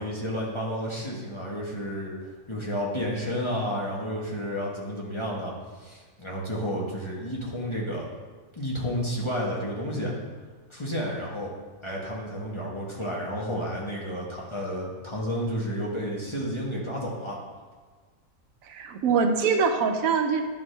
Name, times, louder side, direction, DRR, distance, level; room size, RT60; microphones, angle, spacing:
voice 1, 0.0-2.2 2.5-5.5 5.8-8.1 8.5-10.1 10.7-11.5 11.8-17.4, equal, 25° left, -4 dB, 1.0 m, -31 dB
voice 2, 18.6-20.4, right 5 dB, 80° right, 6 dB, 1.0 m, -24 dB
10.5 x 4.7 x 3.2 m, 1.4 s
omnidirectional pair, 1.5 m